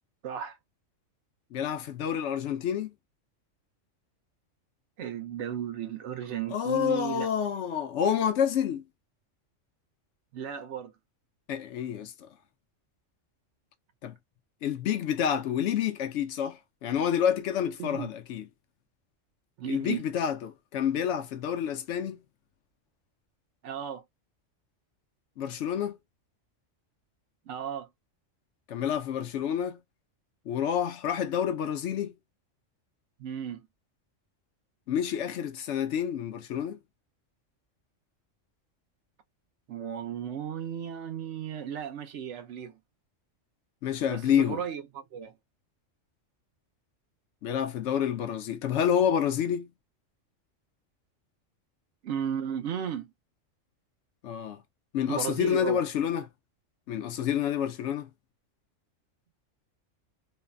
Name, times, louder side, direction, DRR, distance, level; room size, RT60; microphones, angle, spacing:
voice 1, 0.2-0.6 5.0-7.3 10.3-10.9 17.8-18.1 19.6-20.0 23.6-24.0 27.5-27.9 33.2-33.7 39.7-42.8 44.1-45.3 52.0-53.1 55.1-55.8, right 8 dB, 70° right, 1.0 m, -35 dB
voice 2, 1.5-2.9 6.5-8.8 11.5-12.3 14.0-14.2 14.6-18.4 19.7-22.2 25.4-26.0 28.7-29.8 30.5-32.1 34.9-36.8 43.8-44.6 47.4-49.7 54.2-54.6 54.9-56.3 56.9-58.1, left 9 dB, 70° left, 0.9 m, -28 dB
3.2 x 2.1 x 2.2 m
omnidirectional pair, 1.3 m